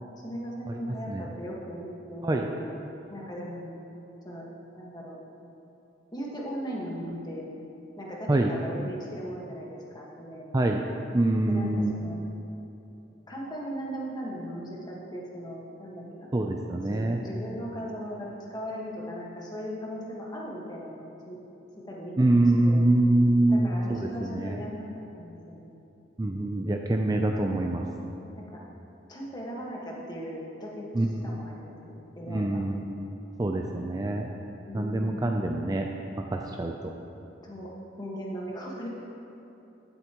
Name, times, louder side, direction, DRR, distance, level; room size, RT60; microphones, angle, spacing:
voice 1, 0.2-2.5 3.1-3.8 4.2-4.5 4.8-5.2 6.1-7.5 8.0-10.6 11.5-12.2 13.3-16.3 16.8-21.4 21.8-22.8 23.5-25.7 28.4-28.6 29.1-31.8 32.1-32.6 34.6-35.1 37.4-37.7 38.0-38.9, equal, 20° left, -4 dB, 1.5 m, -38 dB
voice 2, 11.1-12.0 16.3-17.2 22.2-24.6 26.2-27.9 30.9-31.4 32.3-33.1 33.4-34.3 34.7-35.9 36.3-36.9, right 1 dB, 20° right, 2 dB, 0.4 m, -25 dB
15.5 x 7.9 x 3.0 m, 3.0 s
head